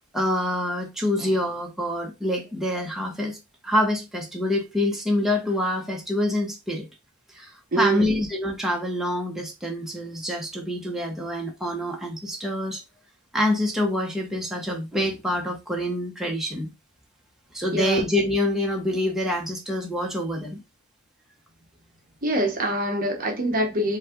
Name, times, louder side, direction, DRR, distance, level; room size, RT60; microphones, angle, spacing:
voice 1, 0.1-3.4 3.6-6.9 7.3-12.8 13.3-16.7 17.5-20.6, left 1 dB, ahead, 1.2 m, -26 dB
voice 2, 7.7-8.2 17.7-18.0 22.2-24.0, right 1 dB, 40° right, 1.0 m, -25 dB
5.3 x 2.6 x 3.7 m
head